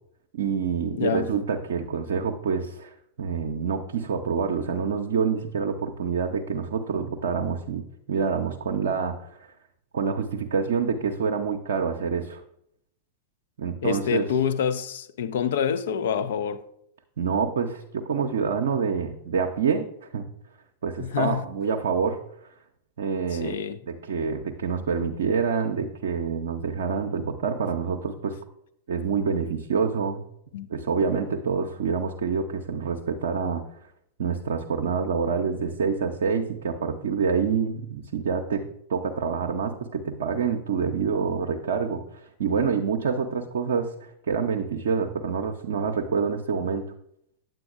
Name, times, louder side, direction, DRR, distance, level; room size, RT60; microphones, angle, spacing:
voice 1, 0.3-9.5 9.9-12.4 13.6-14.3 17.2-19.9 20.1-20.2 20.8-22.2 23.0-23.6 23.9-28.4 28.9-30.2 30.7-33.6 34.2-38.6 38.9-46.8, right 6 dB, 60° right, 0.6 m, -27 dB
voice 2, 0.9-1.3 13.8-16.7 21.0-21.4 23.3-23.8 30.5-30.7, left 7 dB, 60° left, 0.4 m, -27 dB
9.0 x 7.6 x 2.4 m
figure-of-eight pair, 90°, 0 cm